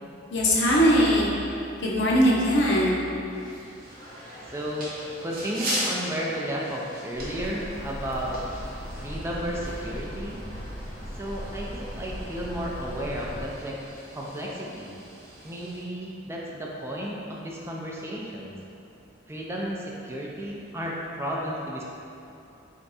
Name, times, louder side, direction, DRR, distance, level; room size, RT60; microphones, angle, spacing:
voice 1, 0.3-1.3 1.8-3.0, equal, 65° left, -5 dB, 0.8 m, -20 dB
sound 1, 3.3-15.8, right 1 dB, 50° right, 1.0 m, -39 dB
voice 2, 4.5-4.9 5.2-8.4 9.0-10.4 11.1-13.8 14.1-14.9 15.4-18.5 19.3-21.8, equal, 15° right, -3 dB, 0.4 m, -33 dB
sound 2, 7.1-13.5, equal, 15° left, 1.2 m, -38 dB
3.7 x 3.4 x 4.1 m, 2.8 s
head